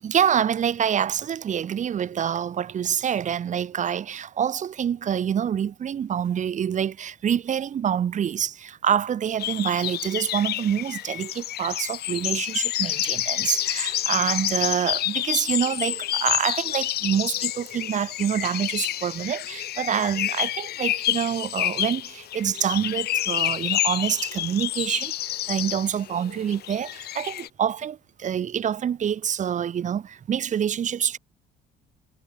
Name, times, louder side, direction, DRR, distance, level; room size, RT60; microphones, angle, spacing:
voice 1, 0.0-31.2, right 8 dB, 45° right, 2.8 m, -26 dB
sound 1, 9.4-27.5, left 14 dB, 70° left, 6.0 m, -28 dB
cardioid pair, 110°, 17 cm